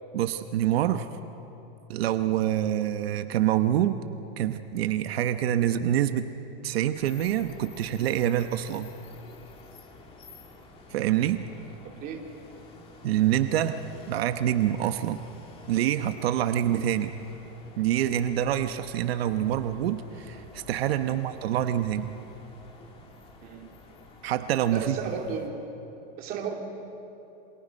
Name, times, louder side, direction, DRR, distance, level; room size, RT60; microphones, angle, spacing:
voice 1, 0.1-1.1 1.9-4.0 4.4-6.3 6.6-8.9 10.9-11.5 13.0-13.8 14.1-15.2 15.7-17.1 17.8-22.1 24.2-25.0, right 11 dB, 90° right, 9 dB, 1.1 m, -26 dB
sound 1, 7.0-25.5, left 3 dB, 20° left, 2.0 m, -50 dB
voice 2, 11.8-12.2 21.0-21.1 23.4-23.7 24.7-25.6 26.2-26.6, right 6 dB, 30° right, 1 dB, 2.6 m, -34 dB
28.5 x 26.5 x 5.4 m, 2.9 s
supercardioid pair, 170°, 30 cm